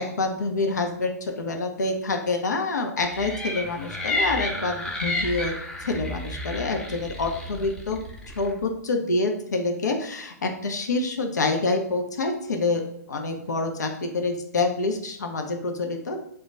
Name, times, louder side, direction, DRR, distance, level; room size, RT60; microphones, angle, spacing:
voice 1, 0.0-5.5 5.8-8.0 8.4-12.8 13.1-16.2, left 3 dB, 80° left, 3 dB, 0.4 m, -27 dB
sound 1, 3.1-8.5, left 1 dB, 5° left, 0.5 m, -31 dB
2.2 x 2.1 x 3.8 m, 0.76 s
figure-of-eight pair, 115°, 9 cm